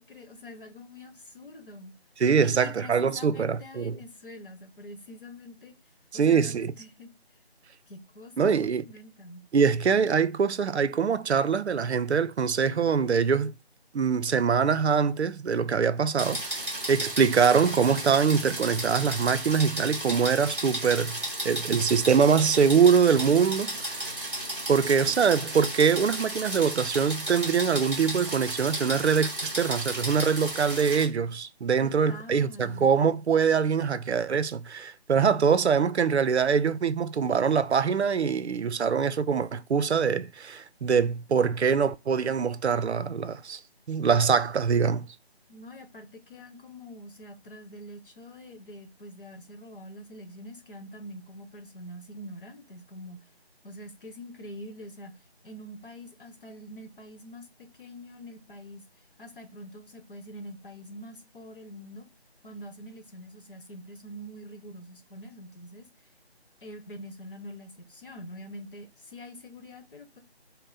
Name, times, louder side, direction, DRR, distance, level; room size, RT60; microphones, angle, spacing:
voice 1, 0.0-1.9 2.4-5.7 6.1-7.1 7.9-9.4 31.8-32.9 45.5-53.2 53.6-55.2 55.4-58.8 59.2-62.1 62.4-65.9 66.6-70.2, left 1 dB, 55° left, 1.0 m, -45 dB
voice 2, 2.2-4.0 6.1-6.7 8.4-8.8 9.5-13.5 13.9-24.1 24.7-43.6 43.9-45.2, right 6 dB, 90° right, 0.5 m, -24 dB
sound 1, 16.2-31.1, right 1 dB, 15° right, 1.5 m, -34 dB
5.4 x 2.1 x 3.9 m
figure-of-eight pair, 170°, 32 cm